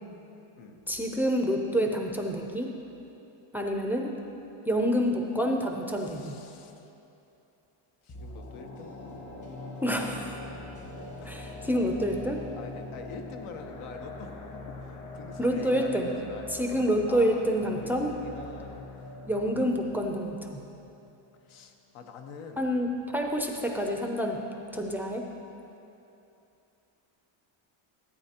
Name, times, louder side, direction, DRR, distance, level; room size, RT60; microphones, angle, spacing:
voice 1, 0.9-2.7 3.5-4.2 4.7-6.4 9.8-10.4 11.2-12.4 15.4-16.1 16.5-18.1 19.2-20.6 22.6-24.4 24.7-25.3, equal, 5° right, 1 dB, 0.4 m, -28 dB
voice 2, 6.0-6.9 8.0-9.0 11.2-11.3 12.5-16.8 17.1-19.8 21.4-22.8, left 4 dB, 80° left, 4 dB, 1.1 m, -46 dB
sound 1, 8.1-21.2 21.5-21.6, left 2 dB, 35° left, 1.1 m, -43 dB
15.0 x 8.8 x 2.9 m, 2.8 s
cardioid pair, 145°, 49 cm